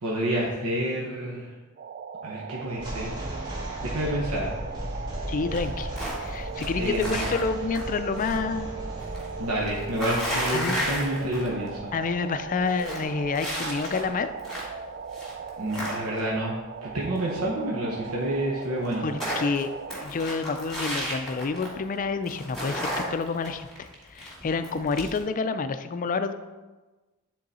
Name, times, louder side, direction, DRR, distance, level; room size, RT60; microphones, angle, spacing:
voice 1, 0.0-1.5 2.2-3.1 3.8-4.5 6.8-7.2 9.4-11.8 15.6-16.5 16.8-19.0, right 1 dB, 85° right, -3 dB, 1.0 m, -29 dB
sound 1, 1.8-20.1, right 6 dB, 40° right, 0.3 m, -38 dB
sound 2, 2.8-14.1, equal, 20° right, 1.4 m, -37 dB
voice 2, 5.3-5.9 6.2-8.8 10.5-10.8 11.9-14.3 19.0-19.7 20.0-26.3, left 4 dB, 40° left, 11 dB, 0.4 m, -28 dB
sound 3, 5.5-6.3 6.6-8.4 8.7-11.7 12.0-12.1 12.5-14.8 15.1-16.4 17.9-18.0 18.2-18.3 18.6-21.9 22.2-25.2, equal, ahead, 2.1 m, -33 dB
9.2 x 3.9 x 4.2 m, 1.2 s
head